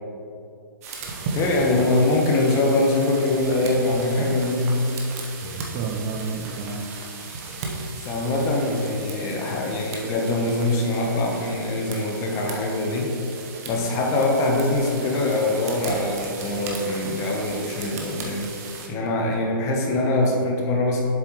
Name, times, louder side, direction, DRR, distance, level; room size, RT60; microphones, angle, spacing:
sound 1, 0.8-18.9, right 3 dB, 40° right, 1.2 m, -36 dB
voice 1, 1.3-4.8 8.0-13.1 13.7-18.5 18.9-21.0, left 2 dB, 25° left, 0 dB, 1.2 m, -23 dB
voice 2, 5.4-7.0 19.2-19.3 19.6-20.0, right 5 dB, 25° right, 3 dB, 0.4 m, -32 dB
7.6 x 7.1 x 3.2 m, 2.5 s
hypercardioid pair, 145°, 12 cm